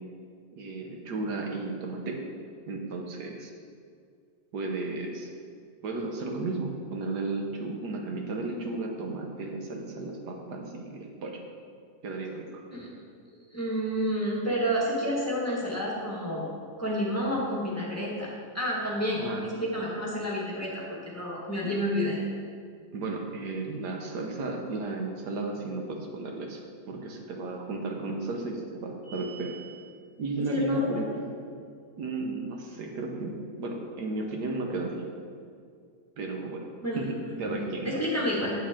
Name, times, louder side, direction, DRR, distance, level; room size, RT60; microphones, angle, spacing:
voice 1, 0.6-2.2 2.7-3.5 4.5-5.3 5.8-11.4 12.0-12.6 19.2-19.4 22.9-29.5 30.2-31.2 32.0-35.1 36.2-36.7 36.9-38.0, right 3 dB, 75° right, 2 dB, 1.5 m, -34 dB
voice 2, 13.5-16.5 16.8-22.2 30.5-30.8 36.8-38.5, equal, 10° left, -5 dB, 1.4 m, -30 dB
sound 1, 29.0-29.9, right 1 dB, 30° left, 2.2 m, -42 dB
8.6 x 8.4 x 3.7 m, 2.2 s
omnidirectional pair, 1.8 m